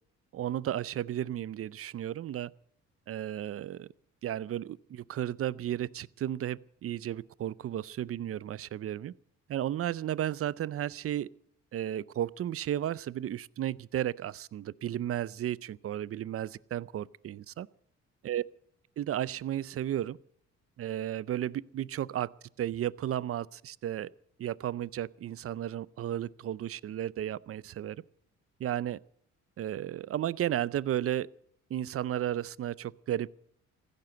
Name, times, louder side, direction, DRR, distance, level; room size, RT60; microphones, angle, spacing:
voice 1, 0.3-2.5 3.1-3.9 4.2-9.1 9.5-11.3 11.7-17.7 18.2-18.4 19.0-20.2 20.8-22.3 22.6-24.1 24.4-28.0 28.6-29.0 29.6-31.3 31.7-33.4, right 11 dB, 50° right, 0.5 m, -33 dB
15.5 x 12.0 x 7.8 m
cardioid pair, 90°, 30 cm